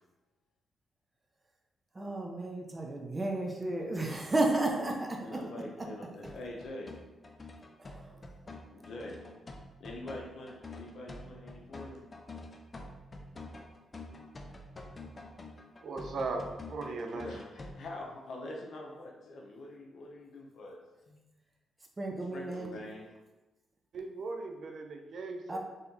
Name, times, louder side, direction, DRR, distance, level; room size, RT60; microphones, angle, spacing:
voice 1, 1.9-5.2 7.9-8.1 22.0-22.8 25.5-25.6, right 2 dB, 25° right, 1 dB, 0.8 m, -32 dB
voice 2, 5.2-7.0 8.7-9.2 9.8-12.1 17.0-21.2 22.3-23.1, left 1 dB, 70° left, 0 dB, 0.8 m, -45 dB
sound 1, 6.2-17.7, left 2 dB, 35° left, 0.5 m, -47 dB
voice 3, 15.8-17.3 23.9-25.6, right 3 dB, 65° right, 4 dB, 0.5 m, -38 dB
4.3 x 3.4 x 2.7 m, 1.1 s
cardioid pair, 75°, 0 cm